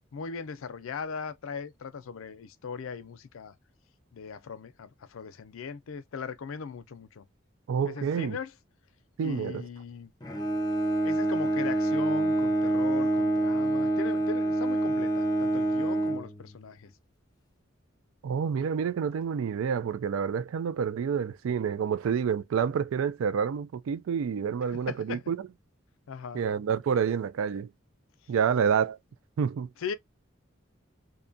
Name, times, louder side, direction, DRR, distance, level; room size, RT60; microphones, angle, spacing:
voice 1, 0.1-3.5 4.1-7.3 7.9-8.5 9.2-10.1 11.0-16.9 24.7-25.2 26.1-26.4 29.8-29.9, left 5 dB, 80° left, 0.4 m, -39 dB
voice 2, 7.7-8.4 9.2-9.6 18.2-25.5 26.3-27.7 28.3-29.0 29.4-29.7, right 7 dB, 80° right, 0.3 m, -28 dB
Bowed string instrument, 10.2-16.9, right 2 dB, 20° left, 0.5 m, -27 dB
2.7 x 2.2 x 2.5 m
head